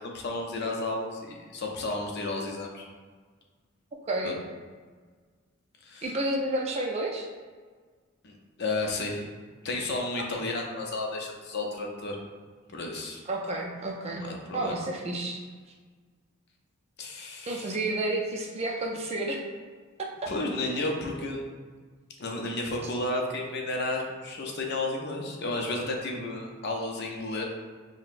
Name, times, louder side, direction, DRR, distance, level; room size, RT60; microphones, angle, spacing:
voice 1, 0.0-2.9 4.2-4.3 5.8-6.1 8.2-9.3 9.6-12.2 12.7-13.2 14.2-14.8 17.0-17.8 20.3-21.4 22.2-27.4, left 2 dB, 55° left, 0 dB, 0.6 m, -32 dB
voice 2, 6.0-7.3 13.3-14.2 14.5-15.4 17.5-19.4, right 1 dB, 30° right, 0 dB, 0.4 m, -30 dB
5.7 x 2.1 x 2.5 m, 1.5 s
head